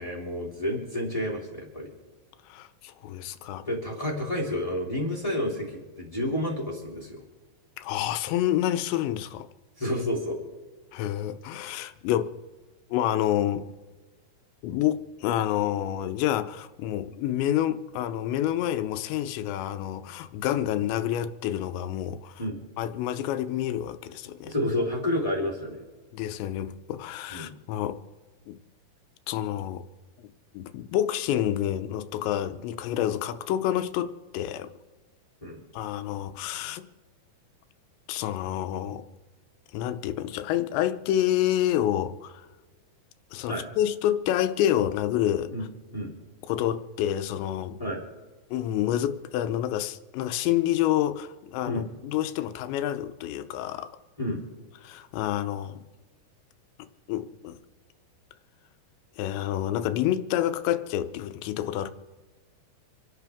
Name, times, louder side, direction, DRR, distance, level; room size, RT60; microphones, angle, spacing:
voice 1, 0.0-1.9 3.6-7.2 9.8-10.4 22.4-22.6 24.4-25.8 27.3-27.5 35.4-35.6 43.5-43.7 45.5-45.6 45.9-46.1 47.8-48.0 51.6-51.9 54.2-54.4, left 1 dB, 10° left, -2 dB, 2.6 m, -30 dB
voice 2, 2.5-3.6 7.8-9.5 10.9-12.3 12.9-13.7 14.6-22.4 22.8-24.5 26.1-28.0 28.5-28.6 29.3-29.8 30.5-34.7 35.7-36.8 38.1-39.0 39.7-42.4 43.3-45.5 46.5-47.8 48.5-53.9 54.8-55.8 57.1-57.6 59.2-61.9, left 12 dB, 90° left, 10 dB, 3.1 m, -28 dB
27.5 x 12.0 x 3.6 m, 1.3 s
omnidirectional pair, 5.0 m